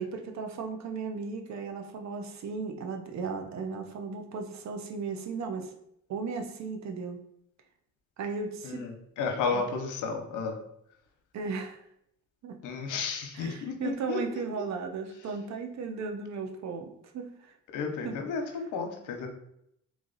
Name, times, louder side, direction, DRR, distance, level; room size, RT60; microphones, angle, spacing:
voice 1, 0.0-5.7 6.1-7.2 8.2-8.8 9.5-9.6 11.3-11.8 12.4-12.6 13.3-17.5 18.0-18.2, right 4 dB, 65° right, 5 dB, 0.8 m, -36 dB
voice 2, 8.6-10.6 12.6-14.7 17.7-19.3, left 4 dB, 85° left, 3 dB, 0.9 m, -33 dB
3.6 x 3.2 x 3.9 m, 0.75 s
cardioid pair, 90°, 30 cm